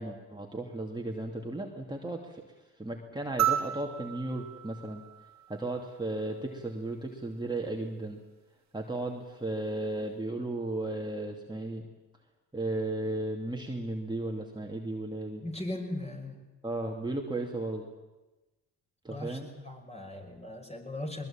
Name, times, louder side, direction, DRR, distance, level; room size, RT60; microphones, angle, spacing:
voice 1, 0.0-2.4 2.8-5.0 5.5-8.2 8.7-11.8 12.5-15.4 16.6-17.8 19.0-19.5, right 2 dB, 10° right, 0 dB, 2.7 m, -35 dB
sound 1, 3.4-6.0 7.6-7.7, right 11 dB, 50° right, 1.9 m, -33 dB
voice 2, 15.4-16.4 19.1-21.3, left 1 dB, 15° left, 2 dB, 5.7 m, -38 dB
21.0 x 20.5 x 8.9 m, 1.1 s
supercardioid pair, 70°, 37 cm